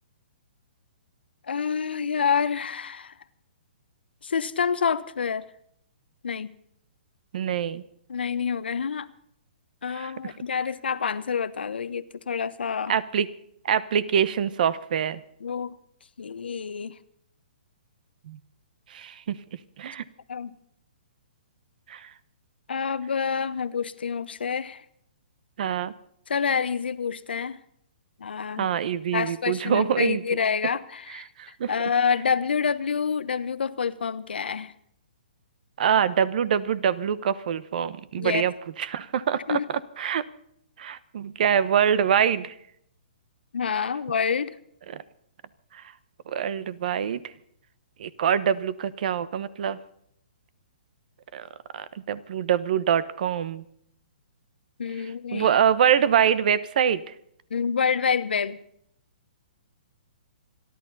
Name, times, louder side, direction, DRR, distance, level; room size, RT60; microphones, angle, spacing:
voice 1, 1.5-3.1 4.2-5.4 6.2-6.5 8.1-9.1 9.8-12.9 15.4-15.8 16.2-17.0 20.3-20.5 22.7-24.8 26.3-27.6 28.2-28.7 29.1-31.3 31.7-34.7 38.2-38.4 39.5-39.7 43.5-44.5 54.8-55.5 57.5-58.6, left 6 dB, 85° left, 13 dB, 1.0 m, -27 dB
voice 2, 7.3-7.8 9.9-10.3 12.9-13.3 13.6-15.2 18.3-18.4 18.9-19.4 19.8-20.0 21.9-22.1 25.6-25.9 28.6-30.2 31.4-31.7 35.8-39.6 40.0-40.2 40.8-42.5 44.9-45.0 45.7-45.8 46.3-47.3 48.0-49.8 51.3-51.5 51.7-53.6 55.3-57.0, right 8 dB, 55° right, 17 dB, 1.0 m, -25 dB
27.5 x 11.5 x 4.1 m, 0.70 s
hypercardioid pair, 150°, 5 cm